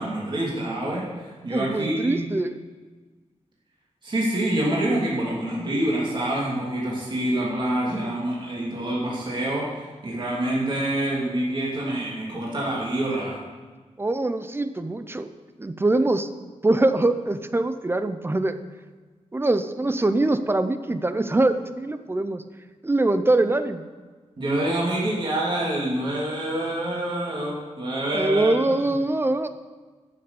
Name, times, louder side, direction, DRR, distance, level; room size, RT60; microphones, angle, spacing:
voice 1, 0.0-2.2 4.0-13.4 24.4-28.7, right 1 dB, 40° right, -5 dB, 2.8 m, -26 dB
voice 2, 1.5-2.5 14.0-15.3 15.6-16.3 16.6-18.6 19.3-22.4 22.8-23.8 28.1-29.5, right 2 dB, 20° right, 10 dB, 0.6 m, -23 dB
13.0 x 6.8 x 6.9 m, 1.4 s
wide cardioid pair, 160°, 12 cm